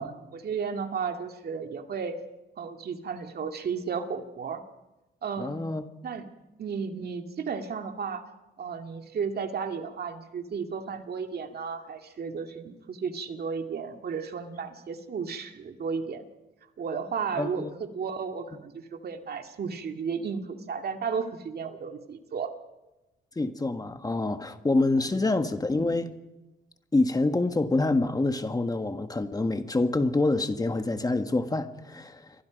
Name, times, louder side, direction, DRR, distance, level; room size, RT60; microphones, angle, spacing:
voice 1, 0.0-2.2 2.6-4.6 5.2-5.6 6.0-6.3 6.6-8.2 8.6-16.2 16.8-22.5 25.0-25.1, right 6 dB, 50° right, 2.3 m, -33 dB
voice 2, 5.4-5.8 17.4-17.7 23.3-26.1 26.9-32.3, left 2 dB, 20° left, 1.6 m, -26 dB
28.5 x 24.0 x 5.3 m
cardioid pair, 90°, 20 cm